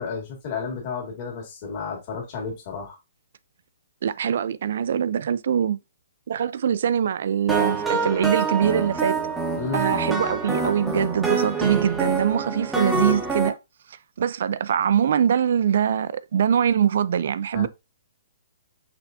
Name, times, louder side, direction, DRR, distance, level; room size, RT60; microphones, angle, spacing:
voice 1, 0.0-3.0 9.6-9.9 17.5-17.7, left 5 dB, 35° left, 1.9 m, -32 dB
voice 2, 4.0-5.8 6.3-9.2 9.7-13.5 14.2-17.7, right 8 dB, 55° right, 0.3 m, -23 dB
sound 1, 7.5-13.5, right 4 dB, 5° right, 0.8 m, -26 dB
5.8 x 3.3 x 2.7 m
hypercardioid pair, 165°, 0 cm